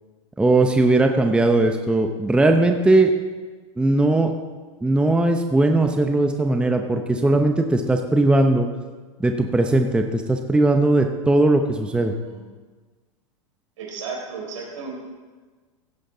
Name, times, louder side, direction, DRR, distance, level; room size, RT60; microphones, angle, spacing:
voice 1, 0.4-3.1 3.8-4.3 4.8-8.7 9.2-12.1, right 2 dB, 5° right, 5 dB, 0.7 m, -19 dB
voice 2, 11.9-12.4 13.8-14.9, right 4 dB, 75° right, -1 dB, 4.1 m, -34 dB
16.0 x 7.8 x 3.9 m, 1.4 s
hypercardioid pair, 115°, 16 cm